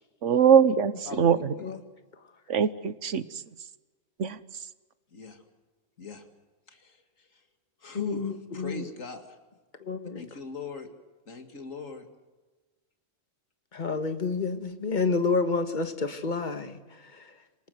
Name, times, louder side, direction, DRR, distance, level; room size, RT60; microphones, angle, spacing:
voice 1, 0.2-1.4 2.5-3.4 4.2-4.4, right 7 dB, 70° right, 14 dB, 1.3 m, -22 dB
voice 2, 1.1-1.8 5.1-5.4 6.0-6.2 6.7-7.4 7.8-9.4 10.2-10.9 11.3-12.1, left 4 dB, 90° left, 6 dB, 2.7 m, -40 dB
voice 3, 7.9-8.9 9.8-10.3 13.7-16.8 17.2-17.3, left 4 dB, 40° left, 8 dB, 1.6 m, -29 dB
27.5 x 18.0 x 8.0 m, 1.2 s
omnidirectional pair, 1.3 m